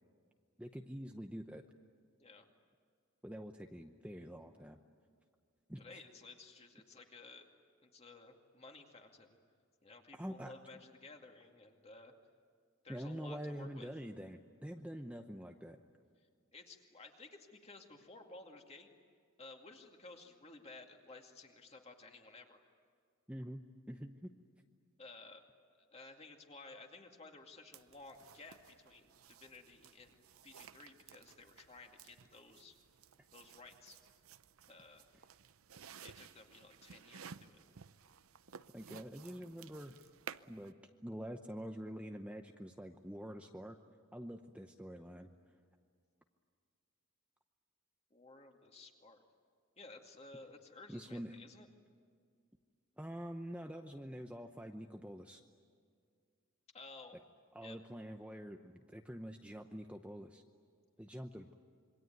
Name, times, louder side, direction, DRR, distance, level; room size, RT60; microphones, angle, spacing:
voice 1, 0.6-1.6 3.2-4.8 5.7-6.0 10.1-10.5 12.9-15.8 23.3-24.3 38.7-40.0 40.5-40.7 41.0-43.8 44.1-45.3 50.9-51.3 53.0-55.4 57.5-60.4 61.0-61.5, equal, 5° right, 4 dB, 0.8 m, -46 dB
voice 2, 5.8-7.5 7.8-9.4 9.8-12.1 12.8-13.9 16.5-18.9 19.4-22.6 25.0-25.4 25.8-32.7 33.3-34.0 34.7-35.1 36.0-37.6 48.1-49.2 49.8-51.7 56.7-57.2 57.6-57.8, left 3 dB, 30° left, 3 dB, 2.3 m, -55 dB
sound 1, 27.7-40.7, right 7 dB, 80° right, 0.7 m, -56 dB
26.5 x 23.5 x 9.3 m, 2.1 s
head